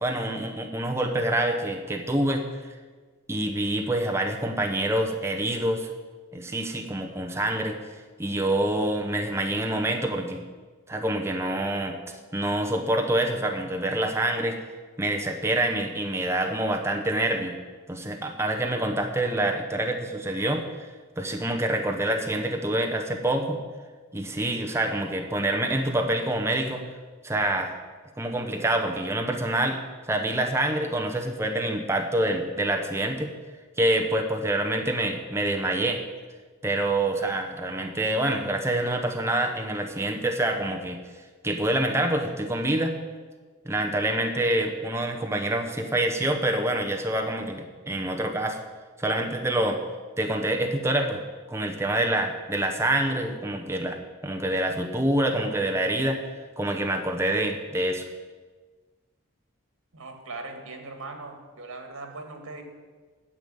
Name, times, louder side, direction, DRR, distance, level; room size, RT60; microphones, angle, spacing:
voice 1, 0.0-2.4 3.3-5.9 6.3-7.8 8.2-10.4 10.9-12.0 12.3-14.6 15.0-17.5 17.9-20.9 21.2-23.6 24.1-26.8 27.2-27.7 28.2-29.8 30.1-33.3 33.8-36.0 36.6-41.0 41.4-43.0 43.6-48.6 49.0-49.8 50.2-51.2 51.5-56.2 56.6-58.0, right 1 dB, 15° right, 2 dB, 0.9 m, -26 dB
voice 2, 59.9-62.6, right 3 dB, 90° right, 5 dB, 1.8 m, -39 dB
9.8 x 7.1 x 8.6 m, 1.4 s
head